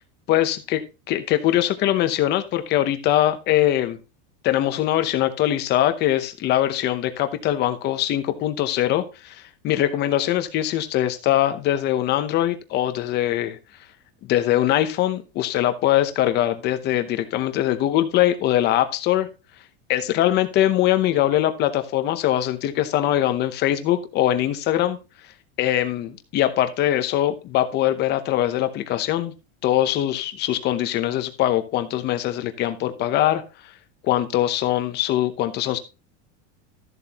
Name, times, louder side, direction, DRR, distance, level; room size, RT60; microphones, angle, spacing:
voice 1, 0.3-4.0 4.4-13.6 14.2-19.3 19.9-25.0 25.6-29.3 29.6-33.4 34.0-35.8, left 13 dB, 25° left, 10 dB, 0.8 m, -22 dB
13.0 x 7.4 x 2.9 m, 0.30 s
supercardioid pair, 175°, 37 cm